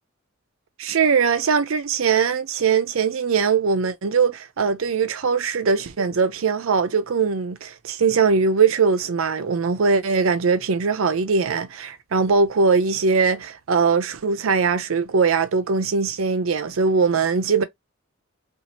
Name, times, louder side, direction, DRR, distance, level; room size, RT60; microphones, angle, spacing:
voice 1, 0.8-17.6, right 5 dB, 75° right, 0.5 m, -21 dB
2.8 x 2.5 x 2.8 m
head